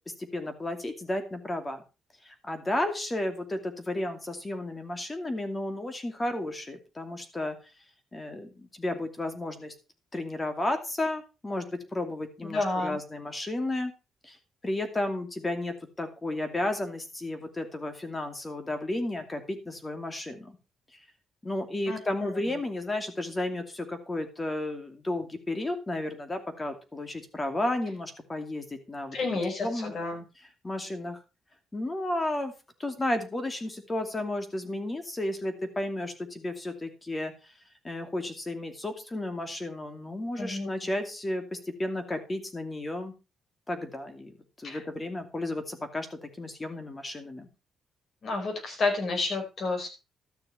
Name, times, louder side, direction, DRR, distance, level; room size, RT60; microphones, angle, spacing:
voice 1, 0.1-1.8 2.2-7.6 8.1-9.7 10.1-13.9 14.2-14.4 14.6-20.6 21.4-29.2 29.6-29.9 30.6-31.2 31.7-32.5 32.8-37.3 37.8-43.1 43.7-47.5, left 1 dB, 20° left, 7 dB, 2.5 m, -33 dB
voice 2, 12.4-13.0 21.9-22.3 29.1-30.2 40.3-40.7 44.6-44.8 48.2-49.9, left 3 dB, 50° left, 3 dB, 4.8 m, -30 dB
13.0 x 6.8 x 5.5 m, 0.31 s
cardioid pair, 90°, 0 cm